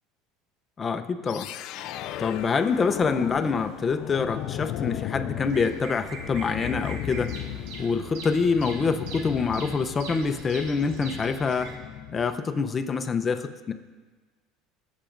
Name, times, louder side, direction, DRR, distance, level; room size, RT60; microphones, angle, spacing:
voice 1, 0.8-1.5 2.2-7.3 7.8-11.7 12.1-13.7, left 5 dB, 25° left, 8 dB, 0.7 m, -26 dB
sound 1, 1.3-12.4, left 12 dB, 60° left, 0.4 m, -36 dB
Bird vocalization bird call bird song, 5.4-11.8, right 3 dB, 70° right, 1.3 m, -41 dB
20.0 x 7.3 x 2.6 m, 1.3 s
supercardioid pair, 110°, 0 cm